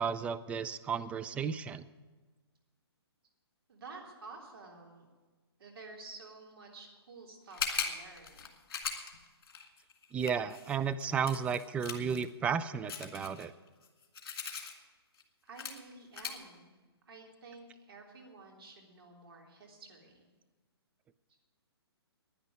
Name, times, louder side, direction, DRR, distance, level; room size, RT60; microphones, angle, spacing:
voice 1, 0.0-1.8 10.1-13.5, right 6 dB, 10° right, 11 dB, 0.4 m, -33 dB
voice 2, 3.7-5.1 5.6-8.5 15.4-16.8 17.1-20.2, right 3 dB, 60° right, 0 dB, 3.5 m, -51 dB
sound 1, 7.5-12.2 12.9-14.7 15.2-15.3 15.6-15.8 16.1-16.4, left 6 dB, 55° left, 2.4 m, -39 dB
10.5 x 10.0 x 9.7 m, 1.3 s
figure-of-eight pair, 130°, 14 cm